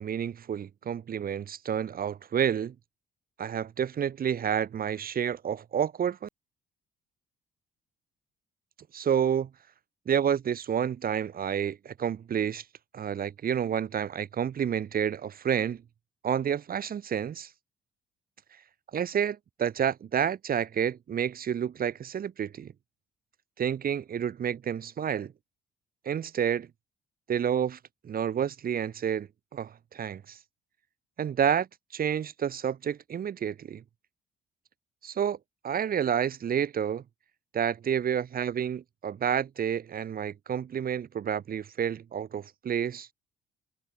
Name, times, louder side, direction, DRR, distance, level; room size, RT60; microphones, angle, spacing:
voice 1, 0.0-2.8 3.4-6.3 8.9-9.5 10.1-12.6 12.9-15.8 16.2-17.5 18.9-22.7 23.6-25.3 26.1-26.7 27.3-27.8 28.0-30.4 31.2-31.7 31.9-33.8 35.0-35.4 35.6-37.0 37.5-43.1, right 8 dB, 45° right, 1.8 m, -29 dB
figure-of-eight pair, 45°, 21 cm